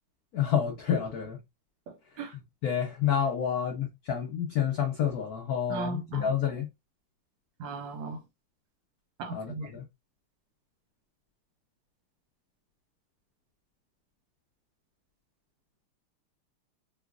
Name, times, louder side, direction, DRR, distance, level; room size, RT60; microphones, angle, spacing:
voice 1, 0.3-1.4 2.3-6.7 9.3-9.8, left 8 dB, 90° left, 0.8 m, -29 dB
voice 2, 1.9-2.3 5.7-6.3 7.6-8.2 9.2-9.7, right 4 dB, 70° right, 1.2 m, -37 dB
4.8 x 2.3 x 2.3 m
omnidirectional pair, 2.4 m